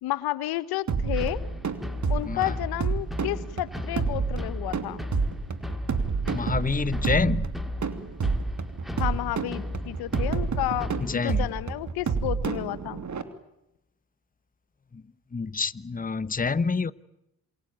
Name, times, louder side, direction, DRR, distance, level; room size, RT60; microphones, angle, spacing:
voice 1, 0.0-1.4 2.1-5.0 8.9-13.0, left 15 dB, 80° left, 1.2 m, -31 dB
sound 1, 0.9-13.2, right 5 dB, 50° right, 3.1 m, -29 dB
sound 2, 1.1-11.2, left 1 dB, ahead, 4.2 m, -36 dB
voice 2, 6.3-7.5 11.0-11.5 15.3-16.9, left 4 dB, 25° left, 1.1 m, -27 dB
27.5 x 22.5 x 9.3 m
hypercardioid pair, 45°, 37 cm